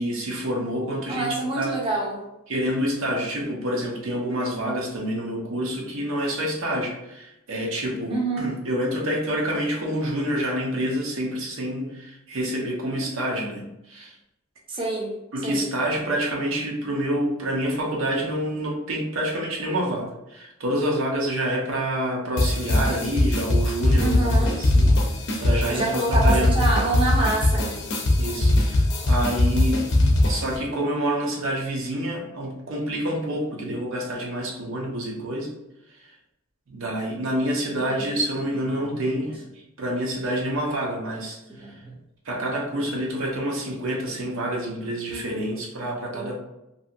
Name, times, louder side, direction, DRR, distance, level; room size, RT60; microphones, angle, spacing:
voice 1, 0.0-1.8 2.5-14.1 15.3-24.9 25.4-26.5 28.2-29.8 30.3-35.5 36.7-39.4 39.8-41.8 42.3-46.4, right 1 dB, 70° right, -1 dB, 0.7 m, -27 dB
voice 2, 1.1-2.2 8.1-8.5 13.0-13.1 14.7-15.1 15.4-15.7 24.0-24.6 25.7-27.9 37.6-38.2 38.7-39.3 41.6-41.9 45.1-45.5 46.1-46.3, right 2 dB, 25° right, -3 dB, 0.6 m, -28 dB
sound 1, 22.4-30.6, left 1 dB, 55° left, 0.6 m, -21 dB
2.7 x 2.6 x 2.5 m, 0.90 s
head